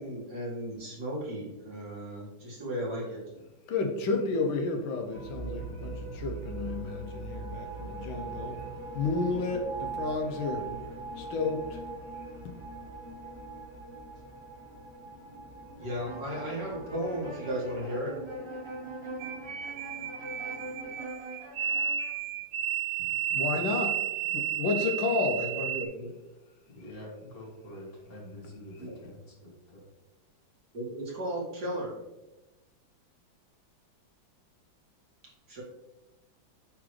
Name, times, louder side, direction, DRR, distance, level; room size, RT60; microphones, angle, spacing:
voice 1, 0.0-3.2 15.8-18.1 25.3-26.1 28.8-29.0 30.7-31.9 35.5-35.6, equal, 55° right, 2.5 m, -35 dB
voice 2, 3.7-8.6 8.9-10.7 11.2-11.8 23.3-24.0 24.3-25.4, left 3 dB, 75° left, 1.5 m, -31 dB
sound 1, 5.1-20.9, right 3 dB, 15° right, 1.1 m, -42 dB
sound 2, 15.8-22.2, right 1 dB, 35° right, 0.4 m, -43 dB
sound 3, 19.2-25.9, right 9 dB, 75° right, 0.9 m, -32 dB
voice 3, 26.7-29.8, left 1 dB, 45° left, 2.3 m, -46 dB
9.3 x 3.8 x 3.2 m
omnidirectional pair, 2.1 m